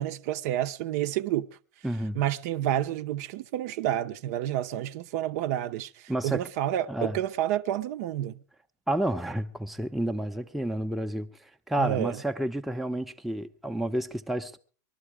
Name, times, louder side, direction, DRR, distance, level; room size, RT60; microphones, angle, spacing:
voice 1, 0.0-1.5 2.1-8.4 11.8-12.2, right 12 dB, 60° right, 0.7 m, -29 dB
voice 2, 1.8-2.2 6.1-6.4 6.9-7.2 8.9-14.6, right 1 dB, ahead, 0.7 m, -30 dB
20.5 x 12.0 x 4.8 m
hypercardioid pair, 120°, 10 cm